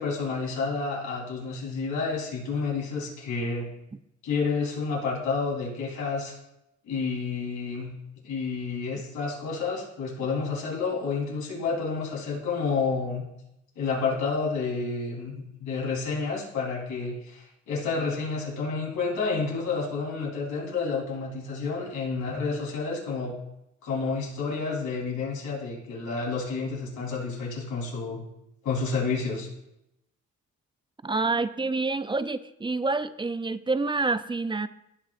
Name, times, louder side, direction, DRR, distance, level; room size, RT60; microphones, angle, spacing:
voice 1, 0.0-3.7 4.2-6.3 6.9-7.9 8.2-13.2 13.8-23.4 23.8-28.2 28.6-29.5, left 4 dB, 75° left, -4 dB, 3.9 m, -30 dB
voice 2, 31.0-34.7, right 3 dB, 15° right, 13 dB, 0.4 m, -27 dB
16.5 x 6.0 x 2.5 m, 0.85 s
cardioid pair, 90°, 30 cm